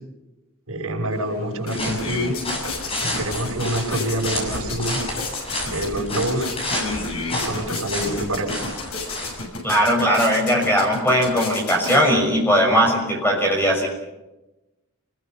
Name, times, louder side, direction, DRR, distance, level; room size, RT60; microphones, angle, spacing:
voice 1, 0.7-2.3 3.0-5.0 5.6-6.5 7.3-8.6, right 1 dB, 90° right, 1 dB, 6.1 m, -26 dB
sound 1, 1.1-1.2 1.5-12.4, left 3 dB, 80° left, 7.0 m, -32 dB
sound 2, 1.7-9.4, left 1 dB, 25° left, 7.0 m, -30 dB
voice 2, 9.6-13.9, equal, 10° left, 0 dB, 6.3 m, -19 dB
29.0 x 21.0 x 5.6 m, 1.0 s
head